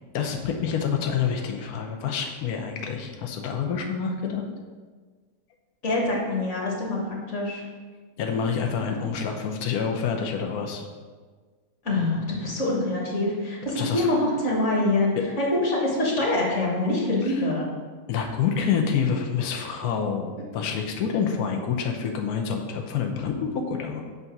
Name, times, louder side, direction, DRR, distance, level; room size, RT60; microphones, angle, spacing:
voice 1, 0.1-4.4 8.2-10.9 13.8-14.0 17.2-17.4 18.1-24.0, left 6 dB, 85° left, 3 dB, 1.2 m, -27 dB
voice 2, 5.8-7.6 11.8-15.1 15.4-17.7, left 2 dB, 55° left, -3 dB, 1.7 m, -25 dB
8.0 x 2.7 x 5.8 m, 1.5 s
omnidirectional pair, 1.6 m